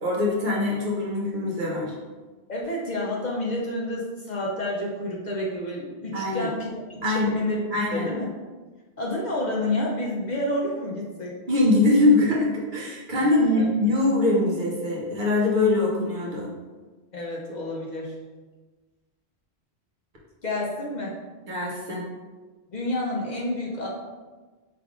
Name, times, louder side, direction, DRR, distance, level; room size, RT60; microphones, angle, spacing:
voice 1, 0.0-1.9 6.1-6.5 7.0-7.4 7.7-8.1 11.5-16.5 21.5-22.0, left 2 dB, 50° right, -3 dB, 0.9 m, -23 dB
voice 2, 2.5-7.6 7.9-8.3 9.0-11.4 13.5-13.7 17.1-18.2 20.4-21.1 22.7-23.9, left 1 dB, 50° left, -3 dB, 0.7 m, -29 dB
5.0 x 3.3 x 2.4 m, 1.3 s
omnidirectional pair, 1.1 m